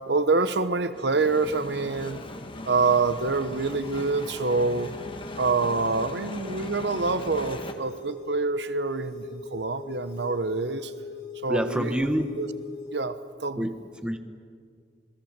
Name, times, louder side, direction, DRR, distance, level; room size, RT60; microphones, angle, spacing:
voice 1, 0.1-2.2 2.7-4.9 5.4-10.9 11.4-12.5 12.9-13.7, right 3 dB, 70° right, 12 dB, 1.0 m, -26 dB
sound 1, 0.9-7.7, left 1 dB, 30° left, 1.6 m, -39 dB
sound 2, 3.0-13.0, left 3 dB, 75° left, 5.9 m, -42 dB
voice 2, 11.5-12.3 13.6-14.2, equal, 5° right, 7 dB, 1.3 m, -27 dB
27.5 x 20.5 x 7.5 m, 2.1 s
head